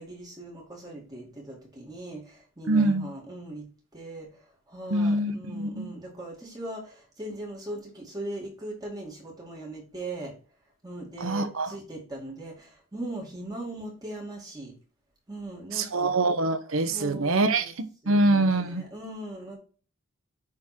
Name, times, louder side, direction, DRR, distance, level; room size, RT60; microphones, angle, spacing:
voice 1, 0.0-3.7 3.9-10.3 10.8-14.7 15.3-16.1 16.9-17.7 18.0-19.6, right 1 dB, 20° right, 2.2 m, -39 dB
voice 2, 2.7-3.1 4.9-5.9 11.2-11.7 15.7-18.9, right 2 dB, 70° right, 0.9 m, -25 dB
9.3 x 3.7 x 4.3 m
head